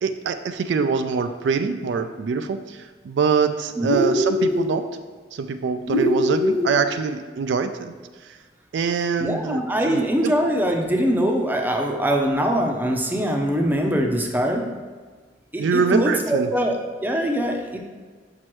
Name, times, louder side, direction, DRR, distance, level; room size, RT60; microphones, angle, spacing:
voice 1, 0.0-4.8 5.3-7.9 8.7-10.3 15.6-16.5, right 5 dB, 70° right, 9 dB, 0.3 m, -24 dB
sound 1, 3.8-4.7 5.9-6.8, left 1 dB, 50° right, 0.9 m, -21 dB
voice 2, 9.2-14.6 15.5-17.8, equal, 10° right, 2 dB, 0.6 m, -23 dB
6.0 x 5.4 x 3.1 m, 1.5 s
head